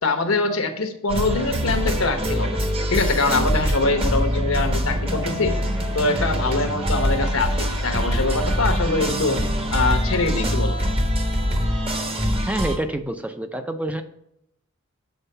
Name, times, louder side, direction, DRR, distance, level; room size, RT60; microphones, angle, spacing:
voice 1, 0.0-2.6 2.9-5.6 5.9-9.4 9.7-10.8, left 3 dB, 85° left, 7 dB, 1.0 m, -23 dB
sound 1, 1.1-12.8, equal, 25° right, 0.9 m, -24 dB
voice 2, 12.5-14.0, right 1 dB, 5° right, 8 dB, 0.4 m, -27 dB
7.1 x 4.5 x 5.5 m, 0.78 s
head